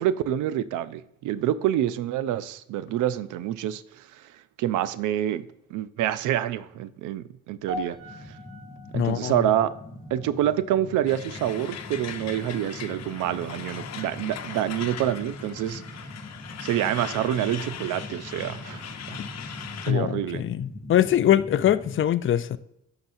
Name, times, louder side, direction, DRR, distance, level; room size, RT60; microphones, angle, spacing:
voice 1, 0.0-4.1 4.6-5.4 5.7-8.0 8.9-9.7 10.1-15.8 16.6-18.8 19.9-20.4, right 11 dB, 90° right, 0.5 m, -27 dB
sound 1, 7.7-12.1 12.3-12.7 13.4-13.5, equal, 50° right, 1.6 m, -42 dB
sound 2, 8.0-22.0, left 1 dB, 20° left, 1.0 m, -42 dB
voice 2, 8.9-9.5 19.9-22.6, left 11 dB, 45° left, 0.5 m, -23 dB
Truck, 11.1-19.9, left 8 dB, 60° left, 0.9 m, -40 dB
11.0 x 5.9 x 2.6 m
cardioid pair, 90°, 30 cm